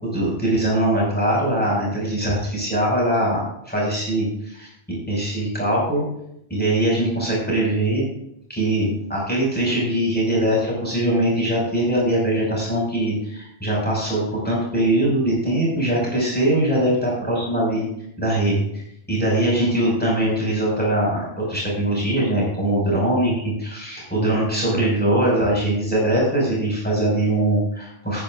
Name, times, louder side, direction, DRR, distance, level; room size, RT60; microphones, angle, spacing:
voice 1, 0.0-4.7 5.1-6.0 6.5-8.0 8.5-17.9 18.2-28.2, right 1 dB, 10° left, -4 dB, 5.5 m, -22 dB
20.0 x 9.9 x 2.5 m, 0.76 s
omnidirectional pair, 1.2 m